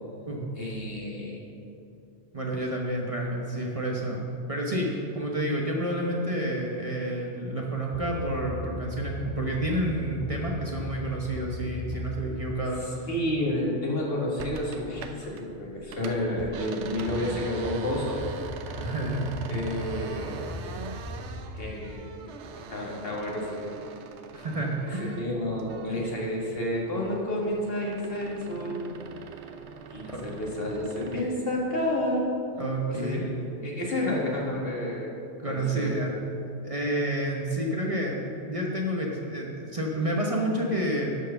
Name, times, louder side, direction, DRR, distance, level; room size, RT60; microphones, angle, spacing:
voice 1, 0.5-1.4 13.1-18.3 19.5-20.5 21.6-22.3 22.7-23.7 24.8-28.9 29.9-32.4 32.9-35.1 35.5-36.1, left 1 dB, 55° left, -3 dB, 1.9 m, -30 dB
voice 2, 2.3-13.1 18.6-19.3 24.3-25.2 25.9-26.0 30.1-30.2 32.6-33.2 35.4-36.1 36.4-41.2, right 1 dB, 30° right, -2 dB, 0.9 m, -30 dB
sound 1, 7.9-13.0 17.1-22.3, left 1 dB, 20° left, 0.4 m, -38 dB
sound 2, 14.4-15.5 15.8-26.1 26.5-31.3, right 5 dB, 75° right, 1.0 m, -42 dB
11.5 x 4.7 x 6.7 m, 2.6 s
omnidirectional pair, 1.2 m